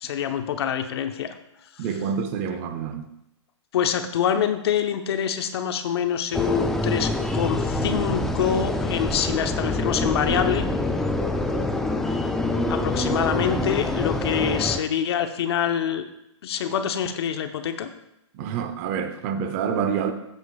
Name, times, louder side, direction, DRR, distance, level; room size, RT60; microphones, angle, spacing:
voice 1, 0.0-1.3 3.7-10.7 12.7-16.0 16.4-17.9, left 8 dB, 55° left, 0.9 m, -25 dB
voice 2, 1.8-3.1 18.3-20.1, right 7 dB, 30° right, 0.7 m, -27 dB
sound 1, 6.3-14.8, left 2 dB, ahead, 0.3 m, -25 dB
13.5 x 8.1 x 2.4 m
hypercardioid pair, 150°, 16 cm